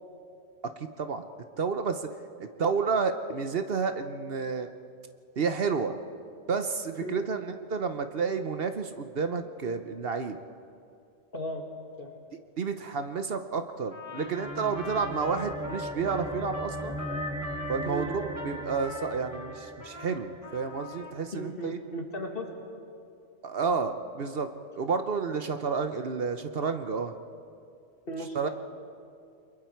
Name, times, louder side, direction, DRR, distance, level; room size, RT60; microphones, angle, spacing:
voice 1, 0.6-1.2 1.6-2.1 2.4-4.7 5.4-6.0 6.5-10.4 12.6-17.0 17.7-21.8 23.4-27.1 28.3-28.5, right 5 dB, 55° right, 8 dB, 1.0 m, -30 dB
voice 2, 11.3-11.6 12.0-12.2 17.9-18.1 21.3-22.5 28.1-28.5, equal, 50° left, 2 dB, 2.3 m, -36 dB
Trumpet, 13.9-20.1 20.4-21.2, left 3 dB, 30° left, 4.3 m, -42 dB
sound 1, 14.1-20.8, right 1 dB, 5° right, 0.7 m, -38 dB
29.5 x 22.5 x 4.6 m, 2.4 s
omnidirectional pair, 1.2 m